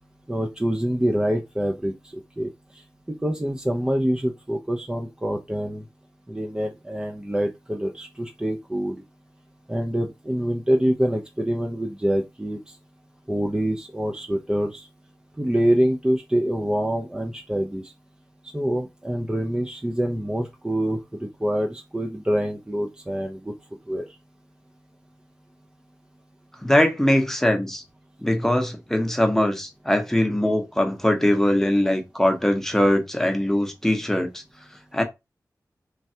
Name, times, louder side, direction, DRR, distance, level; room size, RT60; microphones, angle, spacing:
voice 1, 0.3-1.9 2.4-2.8 3.1-5.8 6.3-9.0 9.7-12.8 13.3-14.9 15.4-17.9 18.5-23.5 23.9-24.0, equal, 10° right, 0.4 m, -25 dB
voice 2, 26.6-27.8 28.2-34.4 34.9-35.0, left 1 dB, 5° left, 0.8 m, -21 dB
3.2 x 2.2 x 2.7 m
wide cardioid pair, 60°, 7 cm